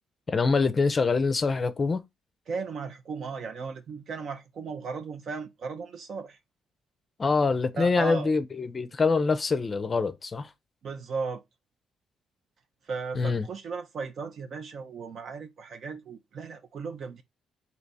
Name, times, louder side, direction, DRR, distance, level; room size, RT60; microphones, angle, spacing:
voice 1, 0.3-2.0 7.2-10.5 13.1-13.5, left 4 dB, 35° left, 0.5 m, -25 dB
voice 2, 2.5-6.4 7.8-8.3 10.8-11.4 12.9-17.2, right 5 dB, 60° right, 0.5 m, -36 dB
3.3 x 2.8 x 4.0 m
cardioid pair, 90°, 0 cm